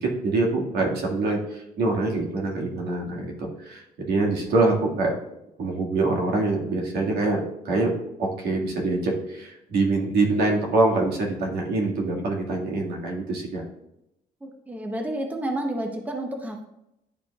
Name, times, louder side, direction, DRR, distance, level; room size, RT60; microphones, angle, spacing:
voice 1, 0.0-5.2 5.6-7.9 8.2-13.6, right 2 dB, 80° right, -1 dB, 1.8 m, -25 dB
voice 2, 14.4-16.7, right 1 dB, 10° right, 3 dB, 0.7 m, -30 dB
10.5 x 4.9 x 2.3 m, 0.84 s
cardioid pair, 150°, 16 cm